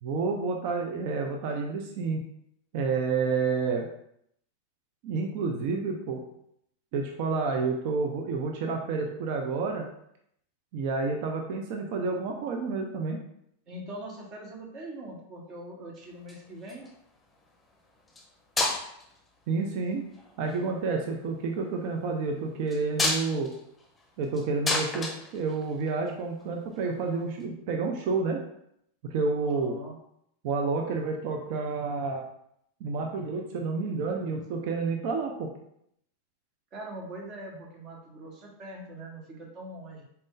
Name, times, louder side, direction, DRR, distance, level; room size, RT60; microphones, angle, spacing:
voice 1, 0.0-2.2 2.7-3.9 5.0-6.2 6.9-9.9 10.7-13.2 19.5-20.1 20.4-23.5 24.2-28.4 29.1-29.7 30.4-32.2 32.8-35.5, right 4 dB, 60° right, 2 dB, 0.6 m, -29 dB
voice 2, 13.7-16.8 29.4-30.0 36.7-40.0, right 1 dB, 45° right, 0 dB, 1.3 m, -42 dB
sound 1, 16.1-16.9 18.1-18.3 18.6-19.2 20.1-20.6 22.7-26.1 27.4-27.5, left 2 dB, 10° left, 0.8 m, -31 dB
4.3 x 2.6 x 3.8 m, 0.73 s
hypercardioid pair, 110°, 0 cm